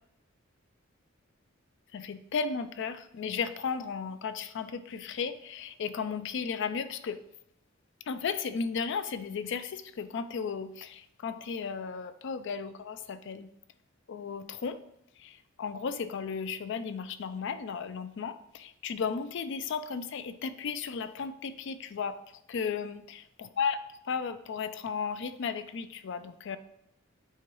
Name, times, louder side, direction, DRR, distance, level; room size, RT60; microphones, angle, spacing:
voice 1, 1.9-7.2 8.1-13.5 14.1-14.8 15.2-22.2 22.5-23.8 24.1-26.6, left 6 dB, 60° left, 12 dB, 0.4 m, -35 dB
8.8 x 3.5 x 3.1 m, 0.75 s
head